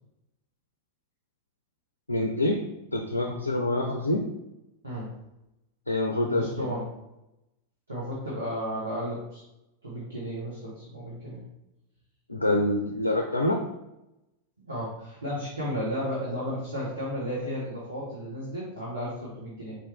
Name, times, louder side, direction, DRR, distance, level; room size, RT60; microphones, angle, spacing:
voice 1, 2.1-2.6 2.9-4.2 5.9-6.7 12.3-13.6, left 1 dB, 80° left, 2 dB, 0.4 m, -26 dB
voice 2, 6.3-6.8 7.9-9.4 9.8-11.4 14.6-19.7, equal, 80° right, -8 dB, 1.3 m, -33 dB
4.7 x 3.0 x 3.4 m, 0.90 s
figure-of-eight pair, 90°, 0 cm